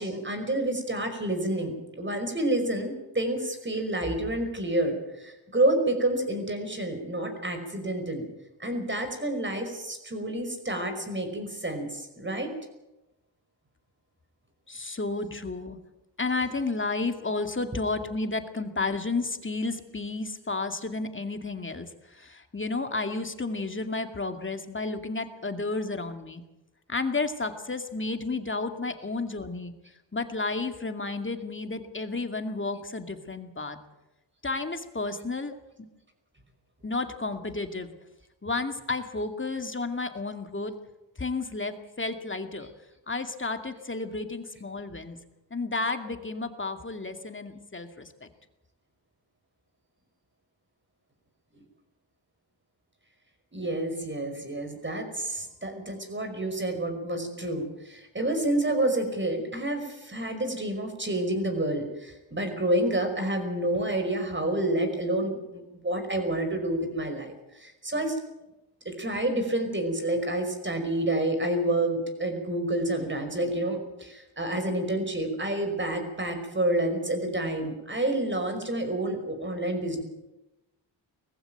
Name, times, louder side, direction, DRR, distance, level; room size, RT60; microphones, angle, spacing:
voice 1, 0.0-8.2 8.6-12.5 16.3-16.5 53.5-68.2 68.9-80.0, right 1 dB, 25° right, 6 dB, 5.5 m, -29 dB
voice 2, 14.7-15.8 16.2-26.4 26.9-29.7 30.1-33.8 34.4-35.6 36.8-37.9 38.4-40.7 41.2-42.7 43.1-45.2 45.5-48.3, left 3 dB, 25° left, 7 dB, 2.3 m, -32 dB
20.0 x 15.0 x 9.1 m, 0.95 s
cardioid pair, 70°, 46 cm